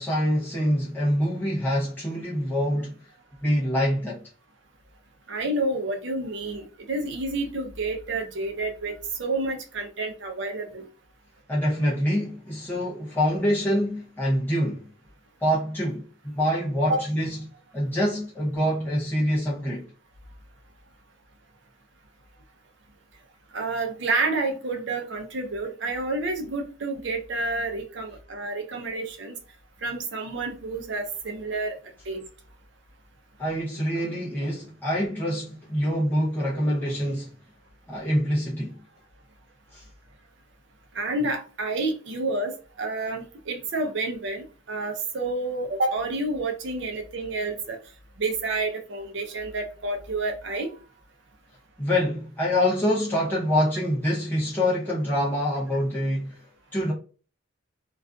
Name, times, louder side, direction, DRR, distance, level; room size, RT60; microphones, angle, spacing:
voice 1, 0.0-2.9 3.4-4.2 11.5-14.9 15.4-17.4 17.7-19.9 33.4-37.3 37.9-38.8 39.7-39.8 51.8-56.4 56.7-56.9, equal, 10° left, 0.6 m, -25 dB
voice 2, 5.3-10.9 16.9-17.0 23.5-29.4 29.8-31.8 32.1-32.2 40.9-47.8 48.2-50.7, right 2 dB, 60° right, 0.5 m, -29 dB
2.5 x 2.3 x 2.3 m
head